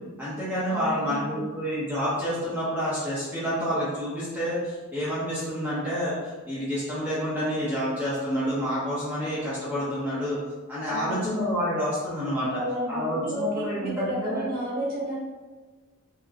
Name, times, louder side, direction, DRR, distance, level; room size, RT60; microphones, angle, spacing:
voice 1, 0.2-10.4 10.7-12.6 12.9-14.5, equal, 5° right, -11 dB, 0.8 m, -28 dB
voice 2, 0.7-1.5 10.9-11.3 12.5-15.1, right 1 dB, 40° right, -6 dB, 1.1 m, -32 dB
3.6 x 2.8 x 2.5 m, 1.3 s
head